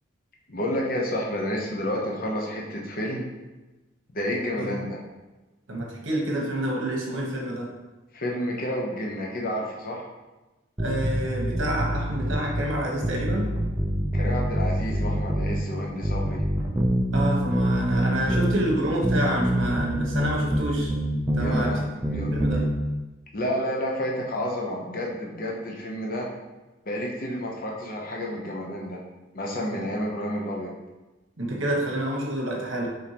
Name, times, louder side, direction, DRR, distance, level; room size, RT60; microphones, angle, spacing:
voice 1, 0.5-3.2 4.1-5.0 8.1-10.1 14.1-16.4 21.4-22.3 23.3-26.3 26.9-29.0 29.3-30.7, equal, 45° left, -2 dB, 0.7 m, -30 dB
voice 2, 5.7-7.7 10.8-13.5 17.1-20.9 21.4-21.8 22.3-22.6 31.4-32.9, right 1 dB, 75° right, -1 dB, 1.1 m, -28 dB
sound 1, 10.8-12.6 13.0-15.6 16.0-18.6 19.0-21.6 22.0-22.7, right 1 dB, 10° right, 0.4 m, -25 dB
5.1 x 3.5 x 2.9 m, 1.1 s
head